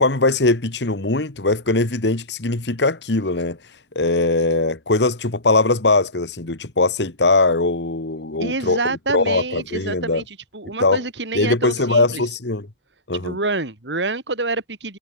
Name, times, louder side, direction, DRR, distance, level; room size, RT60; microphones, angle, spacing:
voice 1, 0.0-3.6 4.0-10.2 10.8-11.0 11.3-12.7 13.1-13.4, left 2 dB, 75° left, 1.7 m, -20 dB
voice 2, 8.4-12.2 13.1-15.0, right 3 dB, 80° right, 4.0 m, -27 dB
head